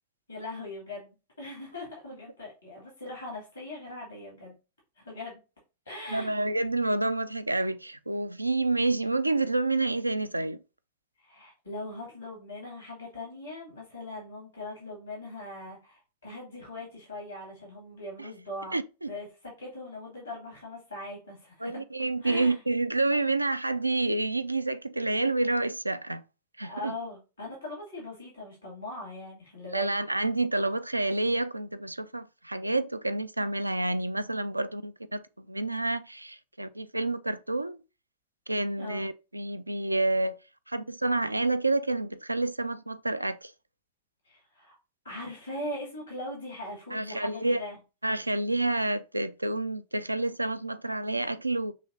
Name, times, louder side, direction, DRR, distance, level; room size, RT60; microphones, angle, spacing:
voice 1, 0.3-4.5 5.0-5.4 5.9-6.3 11.2-18.8 19.1-21.8 22.2-22.6 26.6-30.0 38.8-39.0 44.2-44.8 45.0-47.8, left 1 dB, 85° left, 2.2 m, -40 dB
voice 2, 6.1-10.6 18.2-18.3 18.7-19.1 21.6-26.2 26.6-26.9 29.7-37.8 38.5-40.4 40.7-43.5 46.9-47.6 48.0-51.7, right 2 dB, 85° right, 0.3 m, -29 dB
6.6 x 3.0 x 2.6 m
figure-of-eight pair, 90°, 0 cm